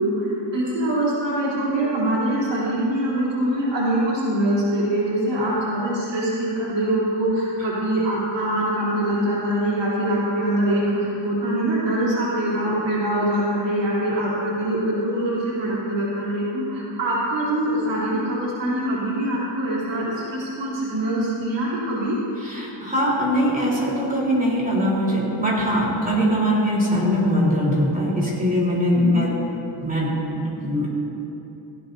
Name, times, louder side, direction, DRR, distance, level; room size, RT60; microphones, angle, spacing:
voice 1, 0.0-22.1 28.9-29.2, right 1 dB, 75° right, -7 dB, 3.3 m, -23 dB
voice 2, 22.4-29.4 29.8-31.0, equal, 20° right, -4 dB, 3.6 m, -22 dB
17.5 x 16.5 x 2.7 m, 2.9 s
wide cardioid pair, 125°, 44 cm